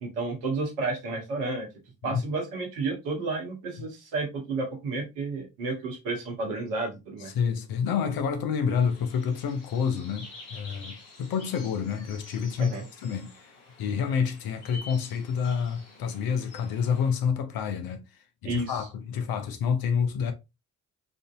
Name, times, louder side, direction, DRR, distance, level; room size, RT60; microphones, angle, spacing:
voice 1, 0.0-1.7 2.0-7.3 12.6-12.8 18.4-18.8, right 3 dB, 80° right, 1.0 m, -31 dB
voice 2, 7.2-12.8 13.0-13.3 13.8-18.0 18.4-20.3, left 6 dB, 60° left, 0.7 m, -28 dB
sound 1, 8.8-17.1, left 2 dB, 80° left, 1.1 m, -48 dB
3.5 x 2.5 x 2.3 m
hypercardioid pair, 40°, 40 cm